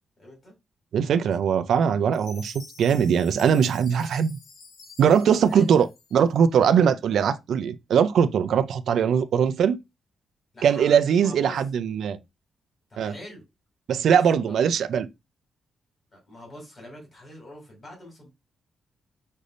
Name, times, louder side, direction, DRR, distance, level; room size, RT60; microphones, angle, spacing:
voice 1, 0.2-0.5 1.2-1.3 3.9-4.0 5.4-5.7 10.5-11.6 12.9-13.4 14.0-14.6 16.1-18.3, left 1 dB, 30° left, 2.3 m, -44 dB
voice 2, 0.9-4.3 5.0-5.9 6.1-9.8 10.6-12.2 13.0-13.1 13.9-15.1, right 7 dB, 65° right, 0.4 m, -21 dB
Chime, 2.1-6.5, left 4 dB, 90° left, 1.1 m, -48 dB
5.3 x 3.3 x 2.5 m
wide cardioid pair, 155°, 0 cm